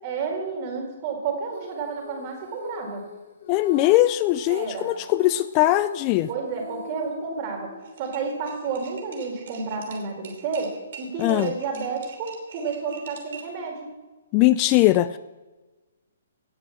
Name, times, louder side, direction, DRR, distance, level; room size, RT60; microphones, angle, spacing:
voice 1, 0.0-3.0 4.5-4.9 6.3-7.7 8.0-13.9, right 5 dB, 35° right, 2 dB, 4.4 m, -31 dB
Female singing, 1.5-8.0, left 4 dB, 55° left, 3.4 m, -42 dB
voice 2, 3.5-6.3 11.2-11.5 14.3-15.2, left 16 dB, 30° left, 15 dB, 0.4 m, -20 dB
sound 1, 7.8-13.6, right 6 dB, 55° right, 3.1 m, -44 dB
17.5 x 6.9 x 7.2 m, 1.2 s
hypercardioid pair, 150°, 0 cm